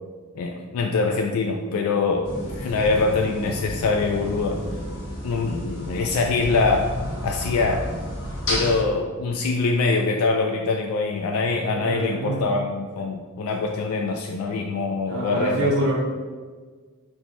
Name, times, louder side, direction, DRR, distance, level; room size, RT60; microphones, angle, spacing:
voice 1, 0.3-4.6 5.2-6.9 7.2-7.9 8.5-15.7, left 3 dB, 75° left, 2 dB, 0.3 m, -24 dB
sound 1, 2.2-8.8, equal, 50° left, 1.5 m, -31 dB
voice 2, 11.8-12.5 15.1-15.9, right 2 dB, 70° right, -5 dB, 0.7 m, -25 dB
4.2 x 2.2 x 4.3 m, 1.5 s
head